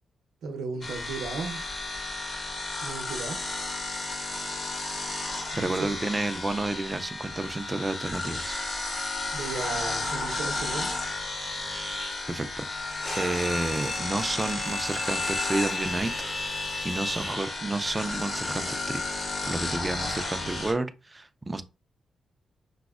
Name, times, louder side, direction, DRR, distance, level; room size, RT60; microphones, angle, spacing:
voice 1, 0.4-1.6 2.8-3.4 5.5-5.9 9.3-10.9, right 4 dB, 85° right, 0.6 m, -35 dB
sound 1, 0.8-20.7, left 2 dB, 55° left, 1.3 m, -33 dB
voice 2, 5.6-8.6 12.3-12.7 13.2-16.1 16.5-19.0 19.5-21.6, right 2 dB, 20° right, 0.3 m, -30 dB
Bowed string instrument, 13.0-17.6, left 3 dB, 30° left, 0.5 m, -36 dB
4.9 x 2.0 x 2.3 m
wide cardioid pair, 130°, 0 cm